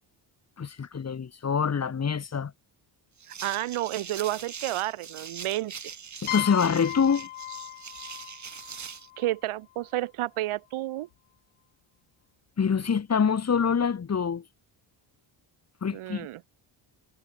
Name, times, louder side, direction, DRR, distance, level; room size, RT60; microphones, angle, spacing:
voice 1, 0.6-2.5 6.2-7.3 12.6-14.4 15.8-16.3, left 6 dB, 30° left, 2.0 m, -25 dB
sound 1, 3.2-9.1, right 7 dB, 35° right, 2.0 m, -42 dB
voice 2, 3.4-5.7 9.2-11.1 15.9-16.4, right 15 dB, 85° right, 1.4 m, -30 dB
sound 2, 6.3-9.9, left 16 dB, 90° left, 1.1 m, -37 dB
cardioid pair, 130°, 48 cm